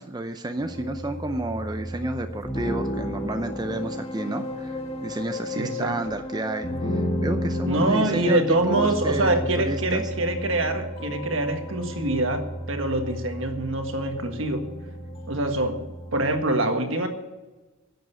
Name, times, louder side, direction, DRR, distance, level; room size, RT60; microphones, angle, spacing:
voice 1, 0.0-10.1, right 2 dB, 20° right, 7 dB, 0.6 m, -31 dB
sound 1, 0.6-16.4, left 1 dB, 30° left, 1.7 m, -32 dB
voice 2, 5.5-6.0 7.7-14.7 15.3-15.9 16.1-17.1, right 2 dB, 65° right, 6 dB, 1.6 m, -25 dB
11.5 x 7.8 x 9.7 m, 1.2 s
head